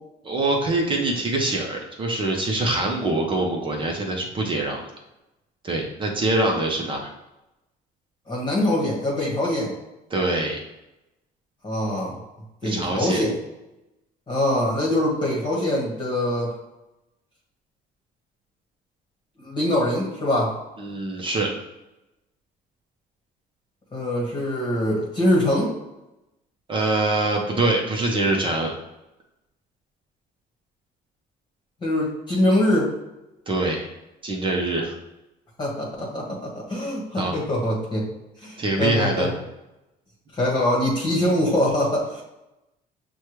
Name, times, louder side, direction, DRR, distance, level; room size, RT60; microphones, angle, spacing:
voice 1, 0.2-4.8 5.6-7.1 10.1-10.6 12.6-13.2 20.8-21.5 26.7-28.7 33.5-33.9 34.2-34.9 37.1-37.3 38.6-39.3, right 2 dB, 30° right, 0 dB, 0.8 m, -24 dB
voice 2, 8.3-9.7 11.6-12.2 12.6-13.4 14.3-16.5 19.4-20.5 23.9-25.8 31.8-32.9 35.6-38.0 38.4-39.3 40.3-42.2, left 1 dB, 25° left, -4 dB, 1.2 m, -23 dB
6.3 x 2.3 x 3.1 m, 0.95 s
cardioid pair, 110°, 17 cm